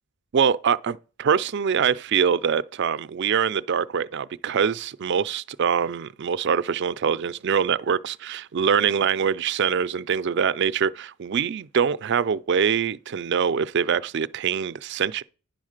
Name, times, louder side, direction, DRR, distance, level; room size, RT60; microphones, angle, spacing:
voice 1, 0.3-15.2, right 7 dB, 55° right, 0.4 m, -24 dB
10.5 x 3.6 x 6.5 m
head